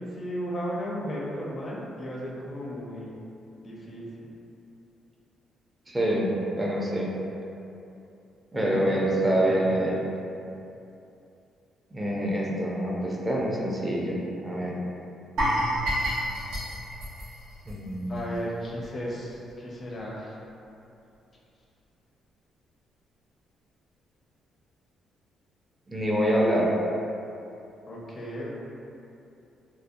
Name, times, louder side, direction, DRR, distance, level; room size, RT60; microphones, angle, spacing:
voice 1, 0.0-3.2 3.6-4.3 8.5-10.0 18.1-20.4 27.9-28.5, equal, 40° left, -4 dB, 0.5 m, -35 dB
voice 2, 5.9-6.3 6.6-7.1 8.5-10.0 11.9-14.8 17.7-18.3 25.9-26.7, right 1 dB, 20° right, -4 dB, 0.4 m, -26 dB
Sparkling Steroids, 15.4-18.4 18.6-18.8 19.3-19.4, equal, 90° right, 0.7 m, -29 dB
2.6 x 2.1 x 2.5 m, 2.7 s
cardioid pair, 90°, 0 cm